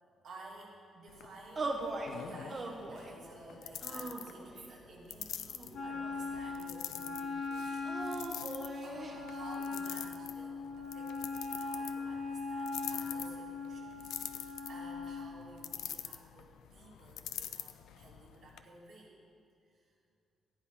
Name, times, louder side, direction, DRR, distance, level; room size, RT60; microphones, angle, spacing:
voice 1, 0.0-1.8 2.1-19.2 19.7-19.9, right 2 dB, 45° right, -5 dB, 3.3 m, -54 dB
sound 1, 1.1-18.6, left 10 dB, 90° left, 0.6 m, -46 dB
sound 2, 1.6-2.1 2.5-3.2 3.8-4.7 5.5-6.5 7.8-9.2, right 2 dB, 25° right, 1.2 m, -40 dB
Wind instrument woodwind instrument, 5.7-15.3, left 4 dB, 60° left, 1.5 m, -40 dB
14.0 x 9.6 x 5.6 m, 2.3 s
cardioid pair, 160°, 0 cm